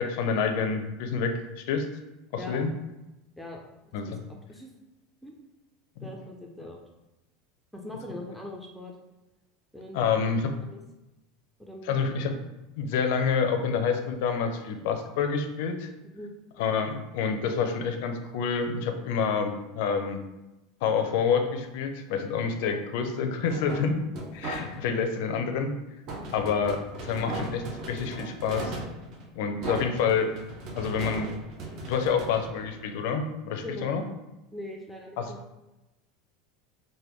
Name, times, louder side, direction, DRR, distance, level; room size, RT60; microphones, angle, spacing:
voice 1, 0.0-1.4 1.7-1.9 2.3-2.7 3.9-4.1 6.0-6.1 9.9-10.5 11.8-12.3 12.8-15.9 16.6-20.2 20.8-24.0 24.3-25.7 26.3-28.8 29.3-30.3 30.7-31.3 31.8-34.0 35.2-35.3, left 6 dB, 70° left, 6 dB, 0.4 m, -28 dB
voice 2, 4.3-4.7 5.2-5.3 6.0-6.8 7.7-8.9 9.7-10.0 10.6-10.8 11.6-12.0 16.0-16.3 33.6-34.0 34.5-35.4, left 1 dB, ahead, -1 dB, 0.4 m, -41 dB
sound 1, 23.5-25.1 26.1-33.2, right 2 dB, 45° right, 0.6 m, -38 dB
3.4 x 2.1 x 3.0 m, 1.0 s
supercardioid pair, 140°, 0 cm